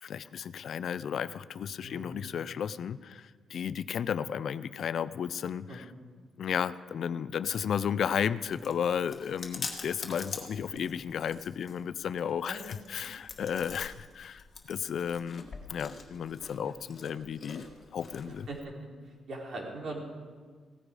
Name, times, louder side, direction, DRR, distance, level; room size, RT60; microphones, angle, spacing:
voice 1, 0.0-5.8 6.4-17.7 17.9-18.5, left 8 dB, 55° left, 16 dB, 0.4 m, -33 dB
voice 2, 1.8-2.3 5.7-5.8 12.5-12.8 16.6-16.7 18.2-18.7 19.0-20.0, right 2 dB, 55° right, -1 dB, 3.5 m, -41 dB
Chewing mastication, 7.9-18.6, left 4 dB, 35° left, 1.7 m, -45 dB
17.0 x 14.0 x 4.9 m, 1.5 s
cardioid pair, 140°, 0 cm